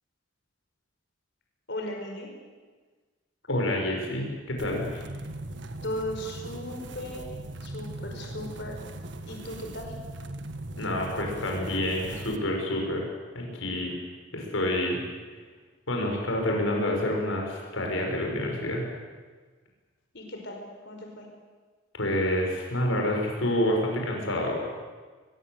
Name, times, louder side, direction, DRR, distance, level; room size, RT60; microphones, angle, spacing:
voice 1, 1.7-2.3 5.8-7.3 7.6-8.8 9.3-10.0 20.1-20.6 20.9-21.3, left 1 dB, 55° left, 2 dB, 5.2 m, -36 dB
voice 2, 3.5-5.0 10.8-13.0 13.3-13.9 14.3-15.0 15.9-18.9 21.9-24.6, left 1 dB, 80° left, 1 dB, 6.4 m, -28 dB
sound 1, 4.6-12.4, right 2 dB, 60° right, 1.7 m, -40 dB
22.5 x 22.0 x 8.2 m, 1.4 s
head